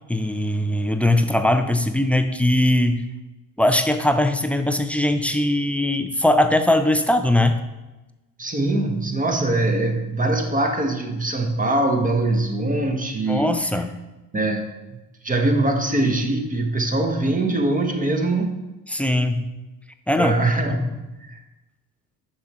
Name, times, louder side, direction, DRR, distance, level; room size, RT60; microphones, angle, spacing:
voice 1, 0.1-3.0 3.6-7.6 13.2-14.0 18.9-19.5 20.1-20.4 20.7-20.9, left 1 dB, 5° left, 7 dB, 0.5 m, -20 dB
voice 2, 8.4-13.5 14.3-14.7 15.2-18.6 20.2-21.4, right 2 dB, 15° right, 3 dB, 1.2 m, -22 dB
9.7 x 6.2 x 3.0 m, 1.1 s
figure-of-eight pair, 60°, 49 cm